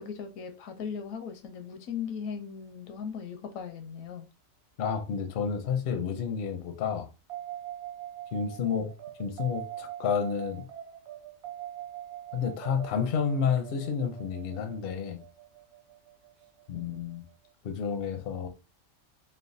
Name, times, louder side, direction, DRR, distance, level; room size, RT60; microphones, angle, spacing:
voice 1, 0.0-4.3 16.7-17.0, left 7 dB, 80° left, 1.0 m, -38 dB
voice 2, 4.8-7.1 8.3-8.9 9.2-10.6 12.3-15.2 16.7-17.2 17.6-18.5, left 6 dB, 60° left, 0.6 m, -30 dB
sound 1, 7.3-17.5, right 12 dB, 65° right, 0.7 m, -43 dB
3.2 x 2.2 x 2.5 m
omnidirectional pair, 1.4 m